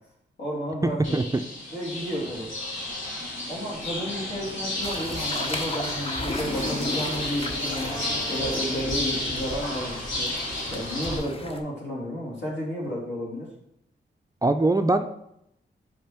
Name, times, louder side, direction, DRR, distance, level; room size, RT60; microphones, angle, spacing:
voice 1, 0.4-1.2 1.7-2.5 3.5-7.9 8.3-10.4 10.7-13.5, equal, 65° left, -4 dB, 2.7 m, -32 dB
sound 1, 1.0-11.2, left 1 dB, 85° left, 2.4 m, -31 dB
sound 2, 4.8-11.6, left 2 dB, 30° left, 0.9 m, -37 dB
voice 2, 14.4-15.0, right 2 dB, 20° right, 7 dB, 0.4 m, -22 dB
5.2 x 5.1 x 4.4 m, 0.77 s
cardioid pair, 70°, 19 cm